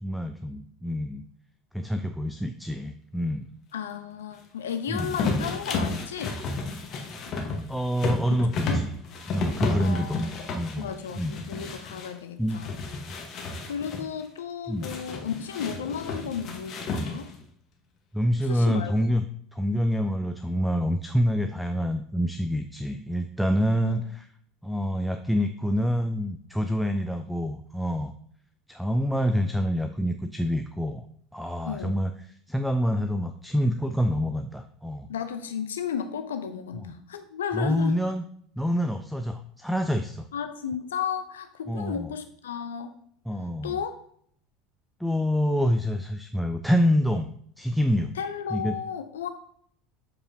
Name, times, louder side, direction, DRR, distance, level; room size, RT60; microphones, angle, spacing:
voice 1, 0.0-1.2 1.7-3.5 4.9-5.2 7.7-8.9 9.3-10.2 10.5-10.9 11.1-11.4 12.4-12.6 13.1-13.2 14.7-14.9 18.1-19.2 19.5-24.2 24.6-28.1 28.7-31.1 31.3-35.1 36.7-36.9 37.5-38.2 38.6-40.3 41.7-42.1 43.3-43.8 45.0-47.3 47.6-48.1 48.5-48.8, equal, ahead, 6 dB, 0.4 m, -27 dB
voice 2, 3.7-6.4 8.3-8.8 9.8-10.3 10.8-12.8 13.7-17.3 18.5-18.9 23.8-24.0 31.6-32.0 35.1-37.9 40.3-42.9 43.6-43.9 48.2-49.3, left 7 dB, 75° left, 9 dB, 0.5 m, -33 dB
sound 1, 4.9-12.1 12.5-14.0 14.8-17.4, left 3 dB, 45° left, 1.2 m, -32 dB
7.4 x 4.9 x 2.7 m, 0.63 s
figure-of-eight pair, 70°, 0 cm